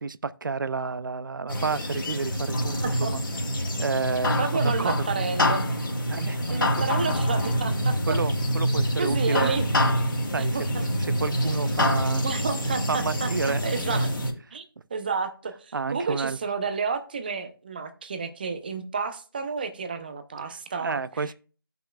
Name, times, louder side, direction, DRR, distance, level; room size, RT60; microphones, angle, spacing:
voice 1, 0.0-3.2 3.8-5.0 6.1-6.6 8.1-9.6 10.3-10.6 11.0-12.3 12.9-13.6 13.9-14.0 15.7-16.4 20.8-21.3, right 4 dB, 60° right, 0.5 m, -30 dB
sound 1, 1.5-14.3, equal, 60° left, 2.3 m, -26 dB
voice 2, 2.8-3.1 4.4-5.7 6.5-8.2 9.0-9.7 10.4-10.9 12.2-14.1 14.5-14.6 14.9-21.3, right 5 dB, 25° right, 0.7 m, -31 dB
14.0 x 5.7 x 2.3 m
figure-of-eight pair, 165°, 12 cm